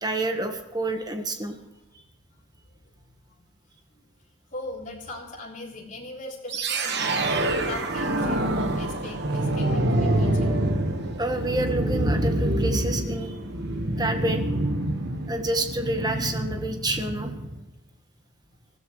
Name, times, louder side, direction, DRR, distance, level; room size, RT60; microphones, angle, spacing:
voice 1, 0.0-1.5 11.2-13.3 14.0-14.4 15.3-17.3, right 2 dB, 20° right, 5 dB, 1.4 m, -28 dB
voice 2, 4.5-7.3 7.6-10.5, left 2 dB, 35° left, -3 dB, 3.5 m, -39 dB
sound 1, 6.5-17.6, right 1 dB, 50° right, 1.4 m, -26 dB
19.5 x 15.0 x 3.2 m, 1.0 s
head